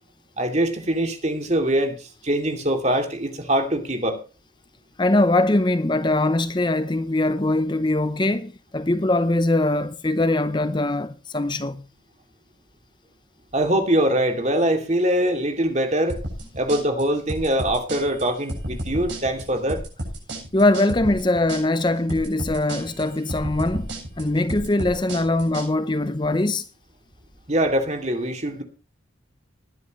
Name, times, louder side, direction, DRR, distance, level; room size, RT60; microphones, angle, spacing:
voice 1, 0.4-4.2 13.5-16.2 16.6-19.8 27.5-28.6, right 1 dB, 35° right, 2.7 m, -23 dB
voice 2, 5.0-11.8 20.5-23.9 24.2-26.6, left 2 dB, 25° left, 0.7 m, -22 dB
sound 1, 16.1-25.7, right 1 dB, 65° right, 8.0 m, -32 dB
20.0 x 10.5 x 3.1 m
head